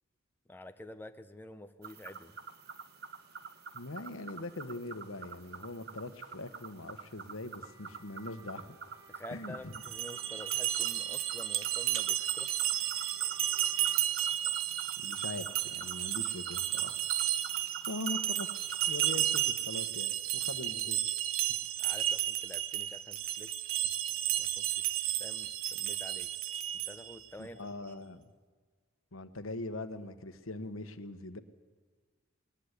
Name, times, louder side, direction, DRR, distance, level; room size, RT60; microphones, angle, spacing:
voice 1, 0.5-2.4 9.1-12.5 21.8-23.5 24.4-26.3 26.9-27.6 28.0-28.2, left 1 dB, 10° left, 7 dB, 0.7 m, -49 dB
sound 1, 1.8-19.4, right 6 dB, 50° right, 1.2 m, -48 dB
voice 2, 3.7-8.7 9.3-9.8 15.0-17.0 17.9-21.0 21.6-21.7 27.4-28.2 29.1-31.4, left 2 dB, 80° left, 11 dB, 1.3 m, -42 dB
sound 2, 7.6-14.0, right 2 dB, 15° right, 1.7 m, -58 dB
sound 3, 9.7-27.2, right 12 dB, 80° right, 0.9 m, -33 dB
21.0 x 20.0 x 8.4 m, 1.5 s
head